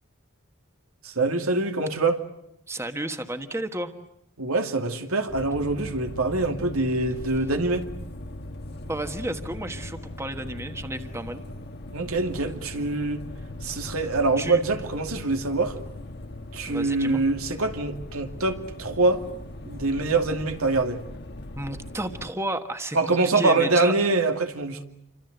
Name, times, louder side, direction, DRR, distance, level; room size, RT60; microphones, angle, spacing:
voice 1, 1.0-2.2 4.4-7.9 11.9-13.2 13.6-15.8 16.5-19.2 19.7-21.0 22.9-24.8, right 3 dB, 85° right, 2.5 m, -24 dB
voice 2, 2.7-3.9 8.8-11.4 14.4-14.6 16.7-17.2 21.6-23.9, right 1 dB, 10° right, 1.4 m, -32 dB
sound 1, 5.3-22.3, left 1 dB, 50° left, 1.4 m, -39 dB
28.5 x 25.0 x 8.0 m
head